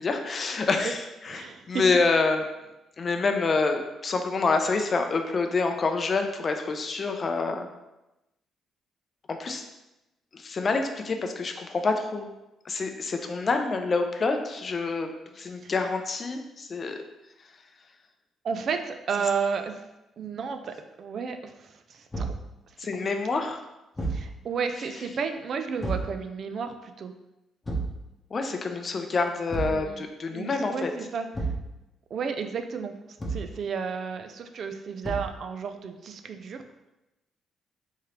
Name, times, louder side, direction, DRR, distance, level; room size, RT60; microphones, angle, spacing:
voice 1, 0.0-2.5 3.0-7.7 9.3-9.6 10.3-12.3 12.7-17.0 22.8-23.6 28.3-30.9, left 4 dB, 40° left, 5 dB, 0.4 m, -27 dB
voice 2, 1.3-1.8 15.6-15.7 18.4-19.8 20.2-22.3 22.8-23.4 24.1-27.1 29.7-30.0 30.3-31.5 32.1-36.6, right 6 dB, 60° right, 7 dB, 0.3 m, -33 dB
Thump thud, 22.1-22.5 23.9-24.3 25.8-26.1 27.6-28.0 29.5-29.8 31.3-31.7 33.2-33.5 35.0-35.4, right 3 dB, 20° left, 0.8 m, -30 dB
3.6 x 3.1 x 2.9 m, 0.96 s
cardioid pair, 90°, 0 cm